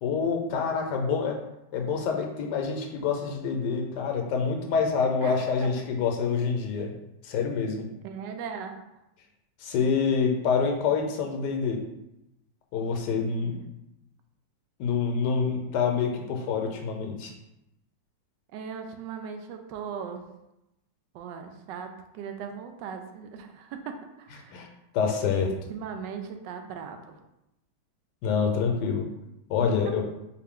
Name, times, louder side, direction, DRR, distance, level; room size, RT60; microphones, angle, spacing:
voice 1, 0.0-1.4 1.7-6.9 7.2-7.9 9.6-11.8 12.7-13.6 14.8-17.3 24.5-24.7 24.9-25.5 28.2-29.1 29.5-30.0, left 5 dB, 75° left, 2 dB, 1.2 m, -26 dB
voice 2, 5.2-5.7 8.0-8.8 18.5-20.2 21.1-24.5 25.5-27.1, right 6 dB, 80° right, 6 dB, 1.2 m, -38 dB
4.4 x 2.6 x 3.6 m, 0.89 s
omnidirectional pair, 1.9 m